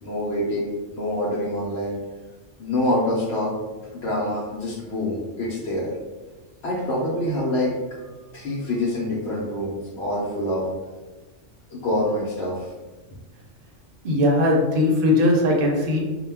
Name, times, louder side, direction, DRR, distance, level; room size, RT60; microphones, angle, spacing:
voice 1, 0.0-2.0 2.6-3.5 4.0-5.9 6.6-10.7 11.7-12.7, left 1 dB, 65° left, -6 dB, 0.8 m, -26 dB
voice 2, 14.0-16.0, left 1 dB, 60° right, 0 dB, 0.6 m, -19 dB
2.1 x 2.1 x 3.2 m, 1.2 s
omnidirectional pair, 1.3 m